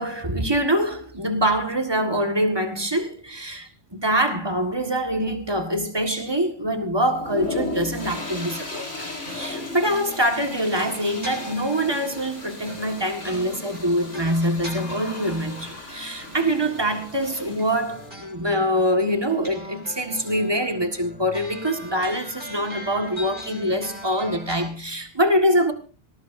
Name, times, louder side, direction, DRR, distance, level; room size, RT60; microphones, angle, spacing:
voice 1, 0.0-25.7, equal, 20° right, 1.8 m, -24 dB
sound 1, 7.1-18.1, left 3 dB, 80° left, 4.7 m, -36 dB
sound 2, 9.2-24.7, equal, 40° right, 7.3 m, -41 dB
19.5 x 19.0 x 2.7 m
omnidirectional pair, 1.2 m